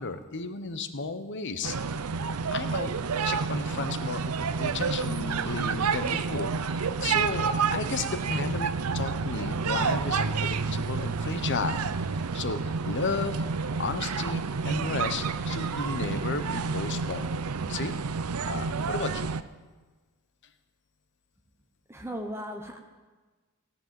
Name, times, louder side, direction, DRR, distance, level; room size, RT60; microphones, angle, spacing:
voice 1, 0.0-2.0 2.5-3.0 3.2-4.3 4.6-11.8 12.1-17.3 17.7-18.0 18.4-19.3, left 4 dB, 55° left, 10 dB, 1.0 m, -34 dB
sound 1, 1.6-19.4, right 5 dB, 85° right, 0.6 m, -29 dB
voice 2, 21.9-22.8, equal, 10° right, 3 dB, 1.0 m, -36 dB
17.5 x 9.0 x 7.7 m, 1.3 s
head